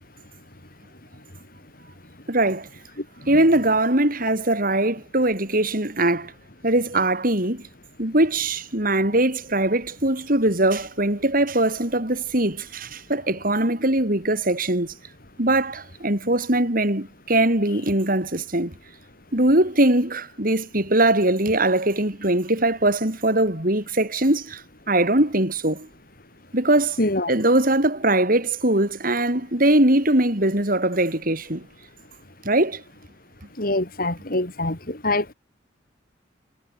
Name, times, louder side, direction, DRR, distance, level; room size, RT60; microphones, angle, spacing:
voice 1, 2.3-2.7 3.3-6.3 6.6-7.6 8.0-14.9 15.4-18.7 19.3-25.9 26.5-27.0 27.3-31.7 32.4-32.8, right 1 dB, 50° right, 5.0 m, -21 dB
voice 2, 27.0-27.3 33.6-35.3, left 2 dB, 50° left, 4.3 m, -24 dB
head